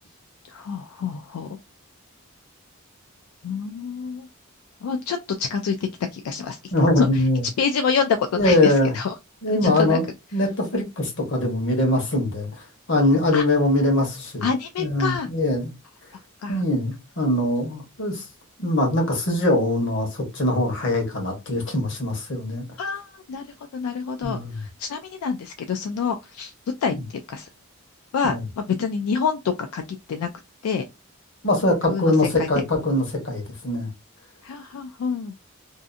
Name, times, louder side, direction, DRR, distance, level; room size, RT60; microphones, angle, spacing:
voice 1, 0.5-1.6 3.4-4.3 4.8-5.8 6.1-7.2 7.6-9.2 9.5-10.0 13.3-13.4 14.4-15.3 16.4-16.6 22.8-23.4 23.7-26.5 26.8-27.0 27.3-27.5 28.1-30.3 30.6-30.9 31.9-32.5 34.4-35.3, left 6 dB, 80° left, 0.3 m, -27 dB
voice 2, 6.7-7.4 8.4-8.9 9.4-10.0 10.3-12.5 12.9-14.5 14.8-15.7 16.5-18.2 18.6-22.6 24.2-24.6 26.9-27.0 28.2-28.4 31.4-33.9, left 1 dB, 55° left, 1.0 m, -22 dB
2.6 x 2.4 x 2.4 m
head